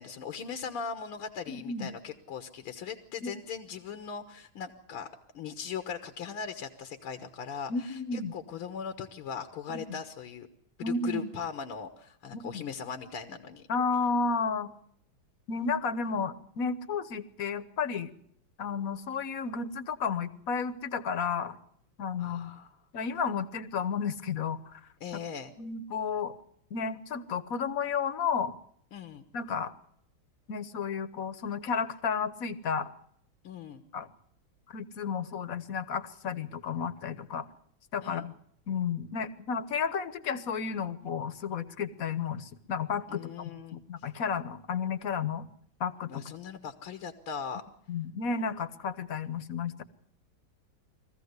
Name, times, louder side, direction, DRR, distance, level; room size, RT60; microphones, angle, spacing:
voice 1, 0.0-5.1 5.3-10.5 10.8-13.7 22.2-22.8 25.0-25.5 28.9-29.2 33.4-33.8 38.0-38.3 43.1-43.8 46.1-47.6, left 6 dB, 85° left, 8 dB, 2.1 m, -39 dB
voice 2, 1.5-2.0 3.2-3.4 7.7-8.3 9.7-10.0 10.8-11.3 12.3-12.6 13.7-14.7 15.5-18.1 18.6-21.6 22.0-22.5 22.9-24.8 25.6-26.3 26.7-28.6 29.3-29.7 30.5-32.9 33.9-34.1 34.7-37.5 37.9-38.3 38.7-45.5 45.8-46.2 47.9-49.8, left 5 dB, 50° left, 14 dB, 1.4 m, -32 dB
23.0 x 15.0 x 8.1 m, 0.70 s
omnidirectional pair, 2.3 m